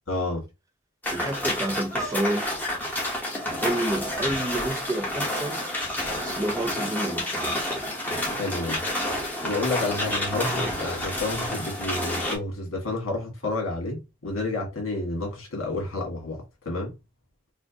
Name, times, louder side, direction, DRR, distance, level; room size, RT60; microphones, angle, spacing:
voice 1, 0.1-0.4 8.3-8.8 9.4-16.4 16.6-16.9, left 2 dB, 85° left, 1.6 m, -30 dB
sound 1, 1.0-12.4, left 1 dB, 10° left, 1.0 m, -29 dB
voice 2, 1.1-2.5 3.6-5.6 6.2-7.8, right 1 dB, 15° right, 0.5 m, -29 dB
4.2 x 2.2 x 2.8 m
head